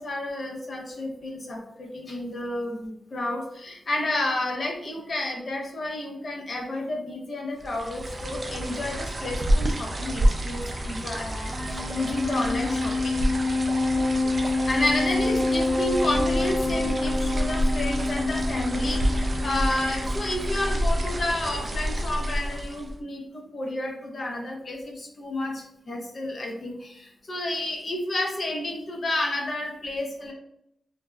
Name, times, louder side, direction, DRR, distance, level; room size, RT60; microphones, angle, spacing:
voice 1, 0.0-13.1 14.4-30.3, left 1 dB, 55° left, 1 dB, 0.5 m, -31 dB
sound 1, 7.6-23.0, equal, 40° right, 0.3 m, -28 dB
Wind instrument woodwind instrument, 11.4-20.9, left 2 dB, 80° left, 1.1 m, -27 dB
2.6 x 2.1 x 2.3 m, 0.76 s
wide cardioid pair, 95°, 0 cm